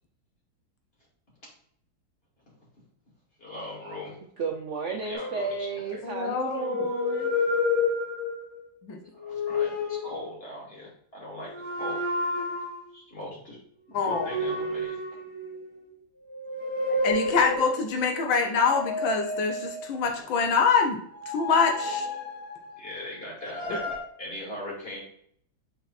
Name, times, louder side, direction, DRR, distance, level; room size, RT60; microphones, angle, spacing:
voice 1, 3.4-4.2 5.0-6.0 9.2-12.0 12.9-13.6 14.0-14.9 22.7-23.9 24.2-25.0, left 1 dB, 30° left, -6 dB, 2.9 m, -40 dB
voice 2, 4.4-7.3, right 4 dB, 80° right, 2 dB, 0.6 m, -33 dB
Sample Scale, 5.1-6.1 6.6-8.6 9.2-10.2 11.5-12.9 14.1-15.8 16.3-18.0 18.6-20.2 21.0-22.9 23.4-24.0, left 2 dB, 50° left, 3.0 m, -30 dB
voice 3, 6.0-6.8 8.8-9.0 13.9-14.3 17.0-21.0 21.3-22.1, left 5 dB, 75° left, 3 dB, 1.5 m, -25 dB
5.6 x 4.1 x 4.1 m, 0.67 s
omnidirectional pair, 2.2 m